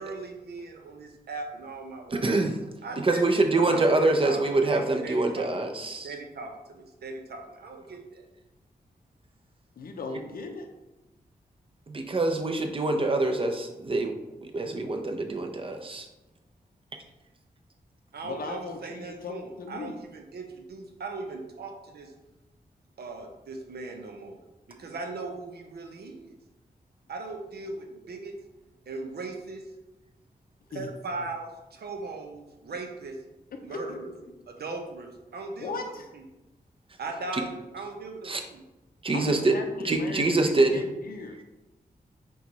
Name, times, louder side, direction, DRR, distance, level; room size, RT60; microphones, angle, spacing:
voice 1, 0.0-2.2 2.8-5.5 6.0-8.2 18.1-22.1 23.0-24.4 24.7-26.4 27.1-28.3 28.9-29.7 30.7-33.2 33.6-34.1 34.5-36.2 37.0-38.6 39.2-39.4, right 3 dB, 80° right, 3 dB, 0.7 m, -39 dB
voice 2, 2.1-2.6 3.0-6.1 11.9-14.1 14.4-16.1 37.3-37.4 38.2-38.4 39.0-39.5 39.8-40.8, right 2 dB, 35° right, 5 dB, 0.6 m, -25 dB
voice 3, 9.8-10.7 18.2-19.9 30.7-30.9 31.2-31.3 33.7-34.3 35.6-36.1 39.1-40.3 40.6-41.4, left 3 dB, 65° left, 4 dB, 0.5 m, -37 dB
4.5 x 2.3 x 3.9 m, 1.0 s
cardioid pair, 65°, 16 cm